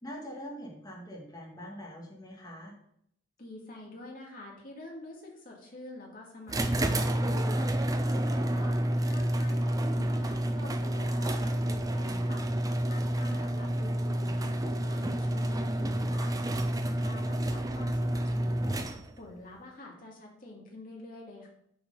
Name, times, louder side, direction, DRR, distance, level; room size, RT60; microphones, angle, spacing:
voice 1, 0.0-2.7 13.3-13.5, equal, 20° left, -2 dB, 1.9 m, -43 dB
voice 2, 3.4-12.5 12.9-21.5, left 2 dB, 40° left, -2 dB, 2.1 m, -47 dB
sound 1, 6.5-19.3, right 1 dB, 15° right, 0.4 m, -29 dB
7.1 x 4.7 x 5.5 m, 0.72 s
head